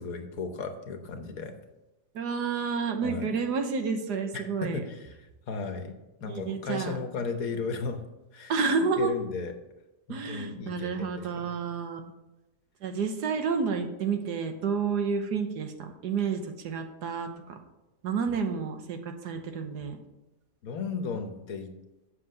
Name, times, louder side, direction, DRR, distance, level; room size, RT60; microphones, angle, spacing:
voice 1, 0.0-1.5 3.0-3.3 4.3-5.9 6.2-8.0 8.3-8.5 9.0-9.6 10.1-11.5 20.6-21.7, left 4 dB, 60° left, 7 dB, 1.3 m, -35 dB
voice 2, 2.1-4.8 6.3-7.0 8.5-9.1 10.1-12.0 12.8-17.6 18.0-20.0, right 5 dB, 75° right, 6 dB, 1.5 m, -30 dB
7.8 x 6.2 x 6.5 m, 1.0 s
omnidirectional pair, 1.8 m